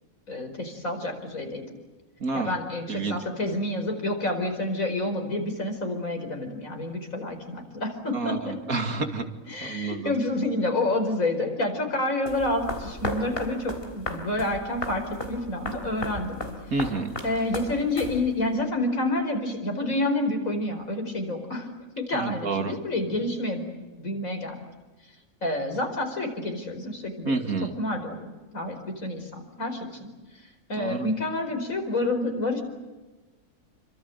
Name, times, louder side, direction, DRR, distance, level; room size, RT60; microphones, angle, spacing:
voice 1, 0.3-1.7 2.3-8.5 9.5-16.4 17.2-21.7 22.0-23.7 24.0-24.6 25.4-27.4 27.8-29.9 30.7-32.6, left 2 dB, 70° left, 4 dB, 5.3 m, -28 dB
voice 2, 2.2-2.6 2.9-3.2 8.1-9.2 9.6-10.1 16.7-17.2 22.1-22.8 27.2-27.8 30.8-31.1, right 3 dB, 85° right, 6 dB, 2.8 m, -29 dB
sound 1, 12.3-18.5, left 1 dB, 40° left, 4.0 m, -35 dB
28.5 x 25.0 x 8.1 m, 1.2 s
omnidirectional pair, 1.5 m